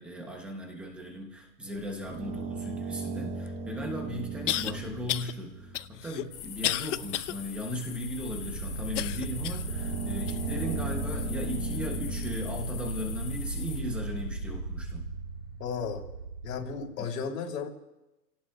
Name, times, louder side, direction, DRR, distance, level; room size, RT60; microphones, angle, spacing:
voice 1, 0.0-15.1, left 1 dB, 5° right, 1 dB, 0.6 m, -37 dB
sound 1, 1.8-6.2 7.3-7.4 7.7-16.8, right 3 dB, 25° right, 1.5 m, -36 dB
sound 2, 3.5-3.6 4.5-4.7 5.1-5.3 5.7-7.3 7.8-7.9 8.9-9.7 10.3-10.4 11.1-11.2, left 13 dB, 50° left, 0.5 m, -31 dB
sound 3, 6.3-13.8, left 8 dB, 25° left, 1.8 m, -44 dB
voice 2, 15.6-16.0 16.4-17.7, left 6 dB, 75° left, 0 dB, 3.0 m, -34 dB
29.5 x 17.5 x 2.3 m, 0.98 s
supercardioid pair, 165°, 47 cm